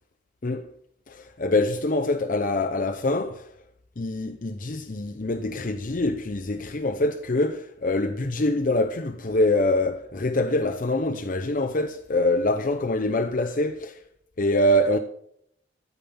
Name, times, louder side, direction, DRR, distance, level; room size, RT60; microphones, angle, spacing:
voice 1, 1.1-3.5 4.0-14.0 14.4-15.0, left 1 dB, 45° left, 0.7 m, -25 dB
13.5 x 8.6 x 5.7 m
head